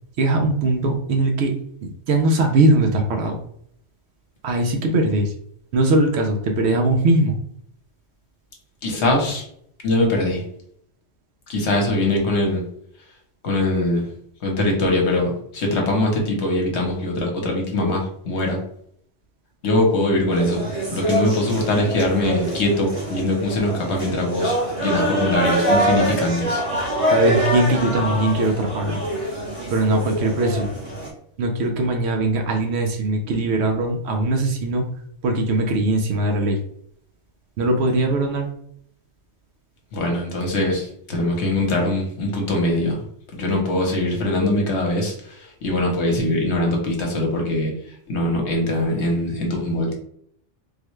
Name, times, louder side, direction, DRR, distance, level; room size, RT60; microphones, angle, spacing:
voice 1, 0.2-1.5 1.8-3.4 4.4-5.3 5.7-7.3 27.1-29.0 29.7-30.7 31.4-34.9 35.2-36.6 37.6-38.5, right 2 dB, 65° right, 4 dB, 0.8 m, -20 dB
voice 2, 8.8-9.4 9.8-10.4 11.5-12.6 13.4-14.0 14.4-18.6 19.6-20.6 20.9-24.5 24.8-26.6 39.9-43.0 43.3-47.7 48.1-49.9, left 1 dB, 65° left, 0 dB, 1.1 m, -22 dB
sound 1, 20.3-31.1, right 1 dB, 30° right, 1.0 m, -25 dB
3.6 x 2.2 x 3.1 m, 0.68 s
omnidirectional pair, 1.3 m